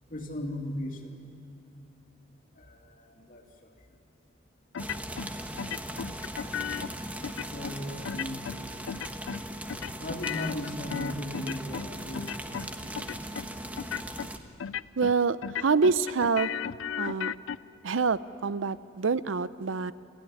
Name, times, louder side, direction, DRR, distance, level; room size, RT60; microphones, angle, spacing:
voice 1, 0.1-1.3 2.5-3.7 6.4-6.6 7.5-8.4 10.0-13.0, left 1 dB, 45° left, 1 dB, 2.8 m, -38 dB
sound 1, 4.7-5.3 5.6-6.9 7.2-7.7 8.0-8.6 8.9-9.4 9.7-11.9 12.1-12.7 13.0-13.5 13.8-14.3 14.6-15.2 15.4-17.6, left 8 dB, 80° left, 0.4 m, -35 dB
sound 2, 4.8-14.4, right 1 dB, 10° right, 1.2 m, -39 dB
voice 2, 15.0-16.5 17.0-17.3 17.8-19.9, right 4 dB, 75° right, 16 dB, 0.6 m, -26 dB
28.0 x 13.5 x 10.0 m, 2.9 s
head